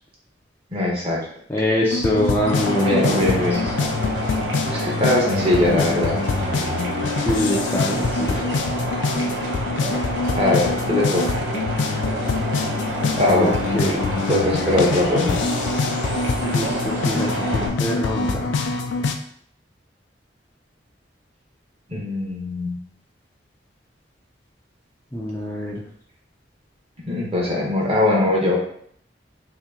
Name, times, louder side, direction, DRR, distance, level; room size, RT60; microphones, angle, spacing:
voice 1, 0.7-1.2 2.7-3.6 4.7-6.1 10.4-11.4 13.2-13.5 14.3-15.4 21.9-22.8 27.1-28.6, left 1 dB, 30° right, -3 dB, 0.9 m, -21 dB
voice 2, 1.5-3.4 7.2-8.4 13.3-14.0 16.4-18.6 25.1-25.7, left 1 dB, 10° left, -4 dB, 0.4 m, -24 dB
sound 1, 1.9-19.1, left 4 dB, 80° left, 0.4 m, -25 dB
sound 2, 2.4-17.7, right 2 dB, 70° right, 0.8 m, -28 dB
2.9 x 2.7 x 3.6 m, 0.64 s
head